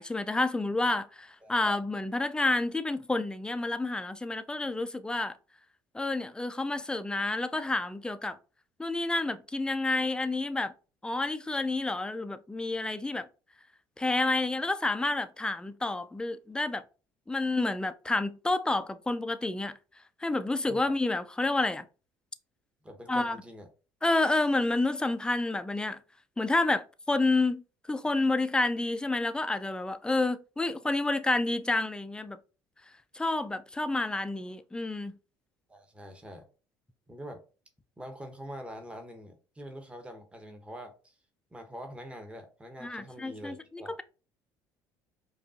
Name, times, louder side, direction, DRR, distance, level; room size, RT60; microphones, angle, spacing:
voice 1, 0.0-5.4 5.9-8.4 8.8-10.7 11.0-13.3 14.0-16.8 17.3-19.8 20.2-21.8 23.1-23.4 24.0-26.0 26.4-27.6 27.9-32.4 33.1-35.2 42.8-44.0, left 2 dB, 10° left, 0.4 m, -29 dB
voice 2, 22.8-23.7 35.7-36.4 37.1-37.4 38.0-41.1 41.5-43.9, equal, 10° right, 0.9 m, -45 dB
5.0 x 2.4 x 2.6 m
hypercardioid pair, 65°, 10 cm